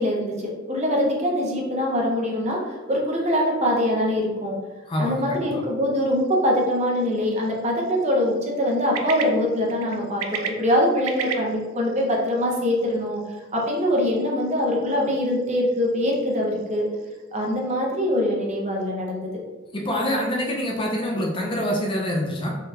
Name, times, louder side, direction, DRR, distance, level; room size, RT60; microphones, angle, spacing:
voice 1, 0.0-4.6 5.0-13.2 13.5-16.9 17.3-19.3, left 1 dB, 35° right, -2 dB, 0.6 m, -23 dB
voice 2, 4.9-5.5 19.7-22.5, equal, 25° left, -1 dB, 0.4 m, -25 dB
sound 1, 6.1-17.8, right 7 dB, 90° right, 0.4 m, -39 dB
3.6 x 2.3 x 2.7 m, 1.3 s
head